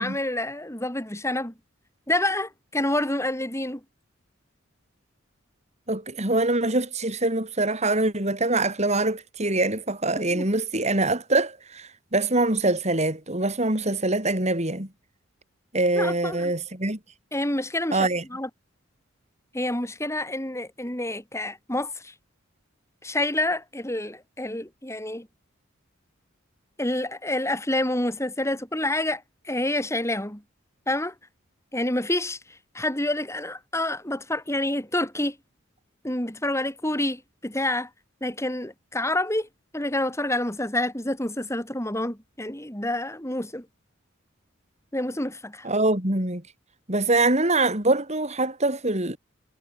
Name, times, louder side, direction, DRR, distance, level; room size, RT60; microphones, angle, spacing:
voice 1, 0.0-1.5 2.1-3.8 10.1-10.5 15.9-16.5 17.3-18.5 19.5-22.1 23.0-25.3 26.8-30.4 30.9-31.1 31.7-32.4 32.7-35.4 36.0-37.9 38.2-39.5 39.7-43.7 44.9-45.7, left 1 dB, 15° left, 5.5 m, -28 dB
voice 2, 5.9-14.9 15.7-17.0 17.9-18.2 45.6-46.4 46.9-49.2, right 2 dB, 35° right, 5.2 m, -24 dB
head